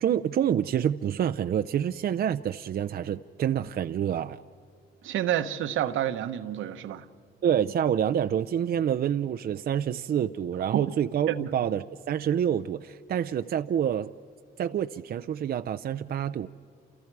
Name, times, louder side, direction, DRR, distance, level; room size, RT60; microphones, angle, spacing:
voice 1, 0.0-4.4 7.4-14.1 14.6-16.5, right 9 dB, 50° right, 0.5 m, -27 dB
voice 2, 5.0-7.1 10.7-10.8 11.3-11.5, right 11 dB, 80° right, 1.1 m, -29 dB
29.5 x 28.5 x 4.7 m
cardioid pair, 90°, 20 cm